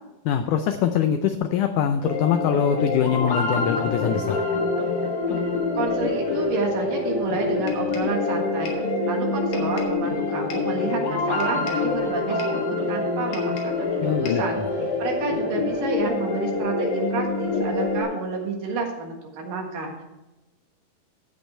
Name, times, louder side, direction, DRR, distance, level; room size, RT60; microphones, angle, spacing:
voice 1, 0.3-4.4 14.0-14.4, left 8 dB, 85° left, 7 dB, 1.8 m, -23 dB
sound 1, 2.0-18.0, left 3 dB, 40° left, 1.9 m, -26 dB
voice 2, 5.8-13.9 14.2-14.6 15.0-20.0, right 4 dB, 65° right, 1 dB, 3.1 m, -30 dB
sound 2, 7.7-8.2 8.7-8.9 9.5-10.0 10.5-10.8 11.4-11.9 12.4-12.7 13.3-13.8 14.3-14.5, left 4 dB, 65° left, 2.9 m, -40 dB
15.0 x 5.3 x 4.4 m, 1.0 s
omnidirectional pair, 4.3 m